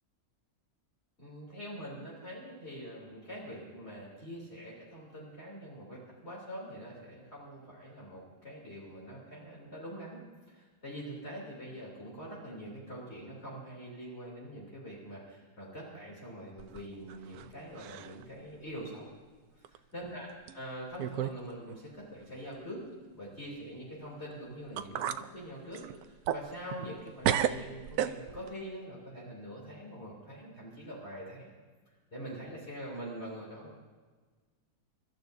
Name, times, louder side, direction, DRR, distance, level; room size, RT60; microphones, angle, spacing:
voice 1, 1.2-10.2 10.5-19.0 19.5-20.3 20.5-22.9 23.1-31.5 32.1-33.7, equal, 40° left, -5 dB, 3.3 m, -44 dB
sound 1, 16.6-17.5 17.8-18.2 18.7-18.8 19.6-19.8 20.5-20.6 21.0-21.4 21.7-21.8 24.3-24.4 24.8-25.3 25.7-27.0 27.2-28.5, right 10 dB, 75° right, 1.0 m, -33 dB
28.5 x 13.0 x 2.6 m, 1.4 s
omnidirectional pair, 1.7 m